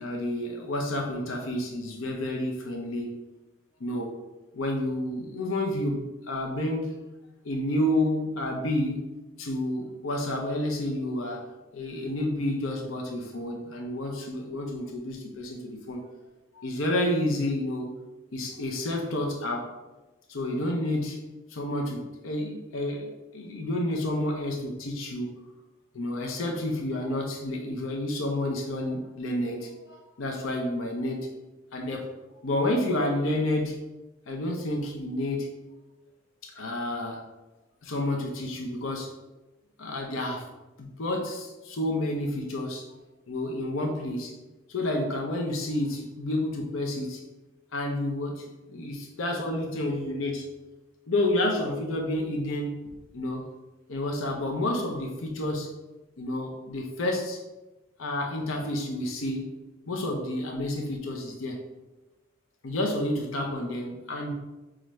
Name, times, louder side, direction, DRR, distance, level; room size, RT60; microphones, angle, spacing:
voice 1, 0.0-3.1 3.8-4.2 4.5-6.9 7.4-9.1 9.4-11.5 11.7-16.0 16.5-17.9 18.3-19.7 20.3-21.2 21.5-25.4 25.9-31.3 31.7-32.1 32.4-33.8 34.3-35.5 36.4-37.2 37.8-39.1 39.8-40.4 40.8-42.9 43.3-44.3 44.7-47.2 47.7-50.4 51.1-53.4 53.9-55.7 56.2-57.4 58.0-59.5 59.9-61.6 62.6-64.3, left 1 dB, 85° left, 1 dB, 0.6 m, -30 dB
5.5 x 2.5 x 3.1 m, 1.1 s
head